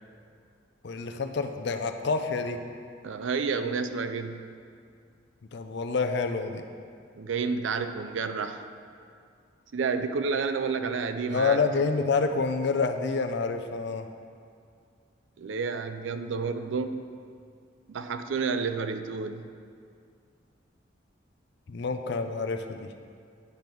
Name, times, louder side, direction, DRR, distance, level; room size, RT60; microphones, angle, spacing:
voice 1, 0.8-2.6 5.5-6.6 11.3-14.1 21.7-22.8, left 4 dB, 60° left, 7 dB, 0.5 m, -28 dB
voice 2, 3.0-4.4 7.2-8.6 9.7-11.6 15.4-17.1 17.9-19.4, right 5 dB, 75° right, 9 dB, 0.4 m, -30 dB
9.3 x 3.5 x 5.9 m, 2.2 s
head